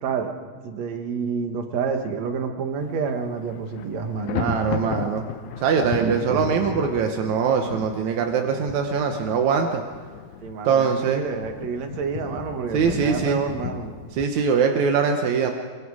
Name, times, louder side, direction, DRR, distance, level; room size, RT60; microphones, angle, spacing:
voice 1, 0.0-4.9 6.0-6.5 10.4-13.9, right 5 dB, 55° right, 5 dB, 2.1 m, -29 dB
Thunder, 2.8-3.1 3.4-14.2, left 8 dB, 90° left, 1.6 m, -36 dB
voice 2, 4.4-5.2 5.6-9.8 10.7-11.2 12.7-13.4 14.2-15.5, right 6 dB, 70° right, 4 dB, 1.7 m, -22 dB
24.0 x 23.5 x 4.9 m, 1.5 s
omnidirectional pair, 4.8 m